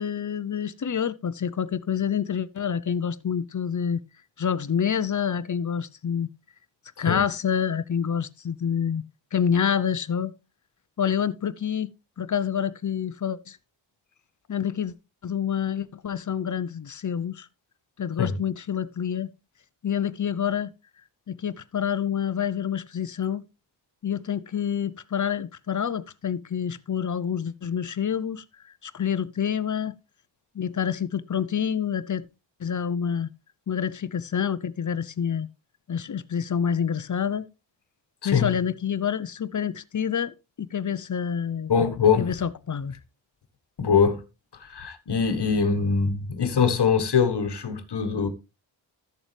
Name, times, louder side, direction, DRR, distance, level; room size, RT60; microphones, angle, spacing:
voice 1, 0.0-4.0 4.4-6.3 7.0-9.0 9.3-10.3 11.0-11.9 12.2-13.6 14.5-14.9 15.2-17.5 18.0-19.3 19.8-20.7 21.3-23.4 24.0-29.9 30.5-32.2 32.6-33.3 33.7-35.5 35.9-37.5 38.2-41.7 42.2-43.0, left 8 dB, 40° left, 0.7 m, -27 dB
voice 2, 38.2-38.5 41.7-42.3 43.8-44.2 44.6-48.3, left 6 dB, 55° left, 1.5 m, -23 dB
13.5 x 7.1 x 3.3 m
supercardioid pair, 45°, 48 cm